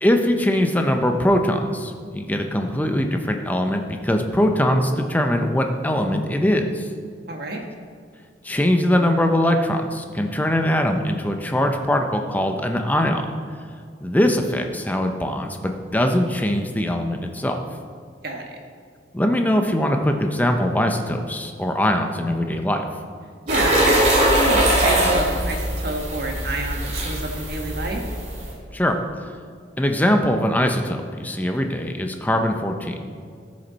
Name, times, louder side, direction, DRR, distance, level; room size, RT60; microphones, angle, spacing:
voice 1, 0.0-6.9 8.4-13.2 14.0-17.6 19.1-22.9 28.7-29.0 29.8-33.0, left 1 dB, 10° left, 4 dB, 0.6 m, -21 dB
voice 2, 7.3-7.6 18.2-18.6 23.4-28.0, right 2 dB, 55° right, 2 dB, 1.3 m, -29 dB
sound 1, 23.5-28.5, right 1 dB, 40° right, 2.5 m, -21 dB
14.0 x 6.4 x 4.1 m, 2.1 s
head